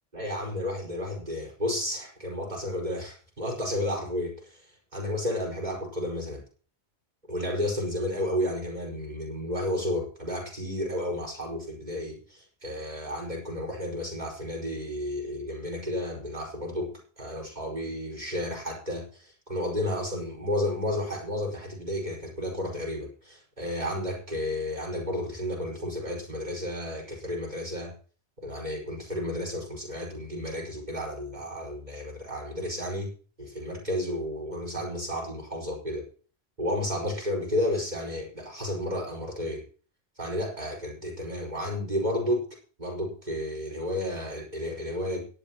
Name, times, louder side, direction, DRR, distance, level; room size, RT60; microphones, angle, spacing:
voice 1, 0.1-4.7 4.9-6.4 7.3-27.9 28.4-33.1 33.4-36.0 36.6-39.6 40.2-42.5 42.8-45.2, left 1 dB, 40° right, -1 dB, 5.2 m, -32 dB
17.5 x 11.5 x 3.0 m, 0.40 s
omnidirectional pair, 1.1 m